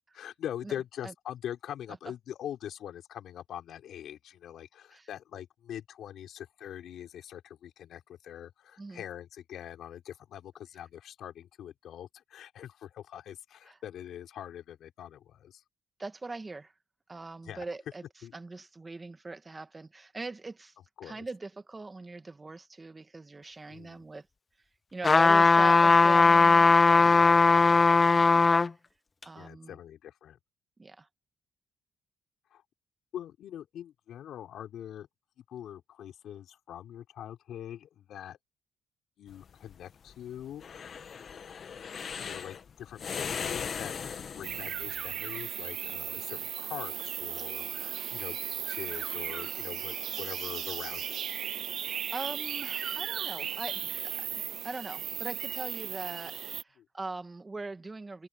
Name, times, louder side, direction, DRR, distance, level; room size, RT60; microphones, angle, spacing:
voice 1, 0.1-15.6 17.4-17.6 18.2-18.3 21.0-21.2 23.7-24.0 27.0-27.8 29.3-30.4 32.5-32.6 33.1-35.1 35.5-38.4 39.2-40.9 42.2-44.0 44.3-51.2 56.8-56.9, left 10 dB, 75° left, 4.3 m, -43 dB
voice 2, 16.0-16.7 17.1-18.0 18.3-20.8 21.0-24.3 24.9-27.5 29.2-29.8 30.8-31.1 47.4-47.5 51.7-58.3, right 3 dB, 25° right, 1.7 m, -41 dB
sound 1, 25.0-28.7 29.2-29.3, left 4 dB, 30° left, 0.4 m, -19 dB
sound 2, 39.3-45.1, left 6 dB, 50° left, 1.3 m, -38 dB
sound 3, 44.4-56.6, right 9 dB, 65° right, 0.6 m, -36 dB
cardioid pair, 90°, 0 cm